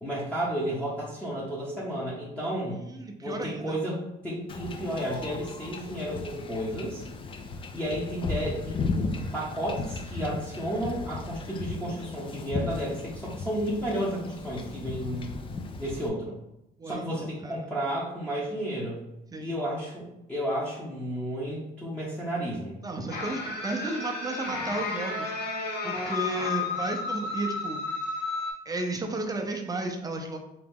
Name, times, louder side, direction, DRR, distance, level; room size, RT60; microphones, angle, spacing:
voice 1, 0.0-2.8 3.2-4.0 4.2-7.0 7.7-15.3 15.8-16.3 16.8-19.0 19.4-22.8, equal, 5° left, -7 dB, 0.9 m, -32 dB
voice 2, 2.7-3.8 16.8-17.7 19.3-19.6 22.8-25.6 25.8-28.2 28.7-30.4, right 2 dB, 20° right, 3 dB, 0.5 m, -34 dB
Wind / Ocean / Boat Water vehicle, 4.5-16.1, left 3 dB, 30° left, 0.4 m, -36 dB
sound 1, 23.1-28.5, left 3 dB, 75° left, 1.1 m, -32 dB
3.4 x 2.9 x 3.6 m, 0.88 s
cardioid pair, 110°, 17 cm